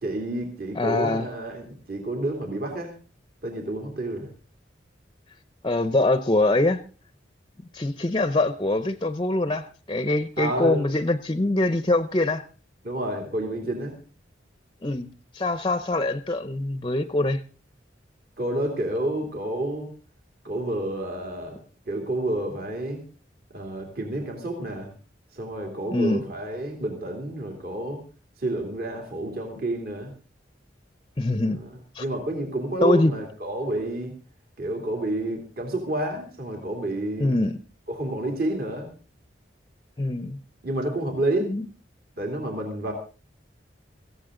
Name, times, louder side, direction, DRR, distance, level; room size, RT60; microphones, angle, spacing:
voice 1, 0.0-2.9 3.4-4.3 10.4-10.8 12.8-14.0 18.4-19.9 20.4-21.6 21.9-23.0 23.5-24.9 25.3-28.0 28.4-30.1 31.5-31.7 32.0-34.1 34.6-37.4 37.9-38.9 40.6-41.5 42.2-42.9, right 1 dB, 55° right, 2 dB, 2.8 m, -29 dB
voice 2, 0.8-1.3 5.6-6.8 7.7-12.4 14.8-17.4 25.9-26.2 31.2-31.6 31.9-32.0 32.8-33.1 37.2-37.6 40.0-40.4 41.5-41.6, left 2 dB, 25° left, 12 dB, 0.6 m, -24 dB
18.0 x 15.0 x 3.8 m, 0.36 s
head